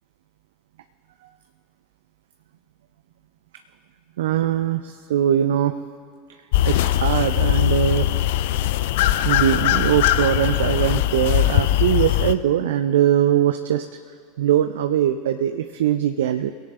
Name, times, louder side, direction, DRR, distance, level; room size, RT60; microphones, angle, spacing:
voice 1, 4.2-5.7 6.6-8.1 9.2-13.9 14.4-16.5, right 10 dB, 70° right, 9 dB, 0.4 m, -21 dB
sound 1, 6.5-12.3, left 13 dB, 60° left, 0.4 m, -20 dB
23.0 x 17.0 x 2.3 m, 2.1 s
figure-of-eight pair, 80°, 0 cm